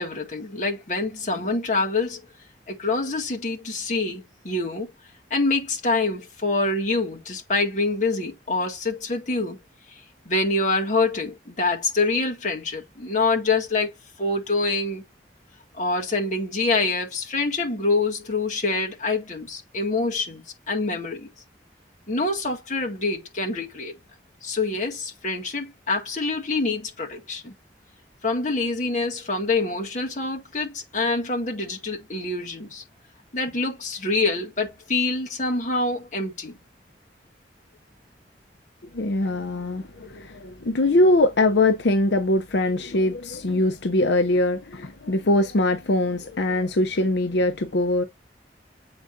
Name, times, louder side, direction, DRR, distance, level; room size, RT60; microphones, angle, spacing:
voice 1, 0.0-2.2 2.7-4.9 5.3-9.6 10.3-13.9 14.2-15.0 15.7-21.3 22.1-23.9 24.4-27.5 28.2-32.8 33.3-36.5, left 3 dB, 45° left, 1.9 m, -26 dB
voice 2, 38.9-48.0, left 2 dB, 80° left, 0.7 m, -22 dB
7.9 x 4.6 x 2.6 m
head